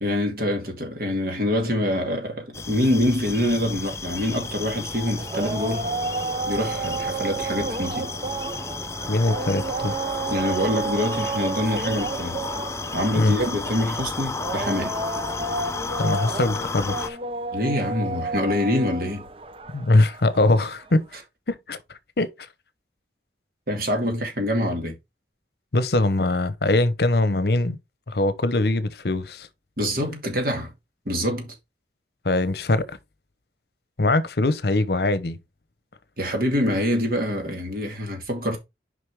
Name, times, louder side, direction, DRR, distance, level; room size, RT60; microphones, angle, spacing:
voice 1, 0.0-5.9 6.5-8.1 10.3-12.4 12.9-15.0 17.5-19.3 23.7-25.0 29.8-30.7 31.1-31.6 36.2-38.6, left 1 dB, 55° right, 2.3 m, -25 dB
sound 1, 2.5-17.1, left 3 dB, 15° left, 0.4 m, -33 dB
sound 2, 4.6-20.9, right 3 dB, 30° right, 0.6 m, -31 dB
voice 2, 9.1-9.9 13.2-13.3 16.0-17.2 19.7-21.1 21.5-21.8 22.2-22.3 25.7-27.8 28.1-29.5 32.2-33.0 34.0-35.4, left 2 dB, 60° left, 0.8 m, -22 dB
6.5 x 5.2 x 3.6 m
head